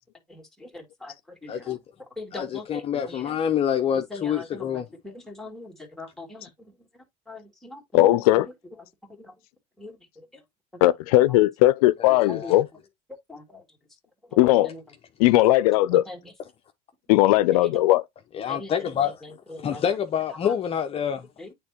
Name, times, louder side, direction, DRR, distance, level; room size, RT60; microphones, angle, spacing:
voice 1, 0.3-1.8 2.1-3.3 3.9-8.4 9.1-9.3 9.8-10.4 10.7-10.8 11.3-11.4 12.3-12.5 13.3-13.8 14.2-14.4 14.6-14.8 15.9-16.3 17.6-17.7 18.5-19.8 20.3-20.5 21.4-21.5, left 2 dB, ahead, 2.2 m, -42 dB
voice 2, 1.5-1.8 2.3-4.8 12.0-12.6 18.3-19.2 19.6-21.3, left 8 dB, 30° left, 0.7 m, -27 dB
voice 3, 7.9-8.5 10.8-12.7 14.4-14.7 15.2-16.0 17.1-18.0, left 16 dB, 85° left, 0.5 m, -18 dB
8.8 x 3.7 x 2.9 m
supercardioid pair, 120°, 18 cm